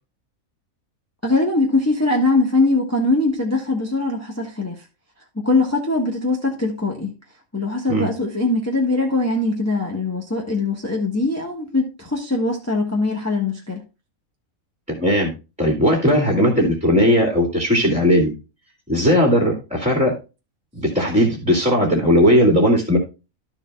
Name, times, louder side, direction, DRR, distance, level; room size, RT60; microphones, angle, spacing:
voice 1, 1.2-4.8 5.4-7.1 7.5-13.8, left 2 dB, 10° left, 1.3 m, -21 dB
voice 2, 14.9-18.3 18.9-20.1 20.7-23.0, equal, 5° right, 2.3 m, -17 dB
13.0 x 7.1 x 2.3 m
omnidirectional pair, 1.5 m